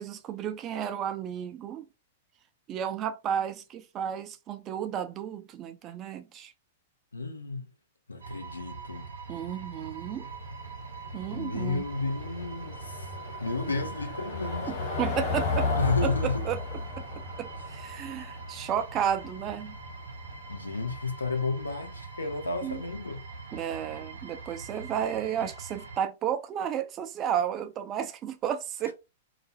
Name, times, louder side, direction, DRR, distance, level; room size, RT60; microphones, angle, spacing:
voice 1, 0.0-1.9 2.7-6.5 9.3-10.3 11.1-11.8 13.7-13.8 14.7-15.7 16.0-16.1 16.4-16.6 17.0-19.8 22.6-22.8 23.5-28.9, right 9 dB, 30° right, 0.4 m, -32 dB
voice 2, 7.1-7.7 8.1-9.1 11.3-13.1 13.4-14.7 15.8-16.5 20.5-23.2, left 3 dB, 90° left, 0.5 m, -32 dB
sound 1, 8.2-26.0, right 4 dB, 80° right, 0.6 m, -43 dB
Car passing by / Engine, 10.3-20.9, left 3 dB, 60° left, 1.2 m, -34 dB
2.4 x 2.0 x 2.6 m
hypercardioid pair, 105°, 0 cm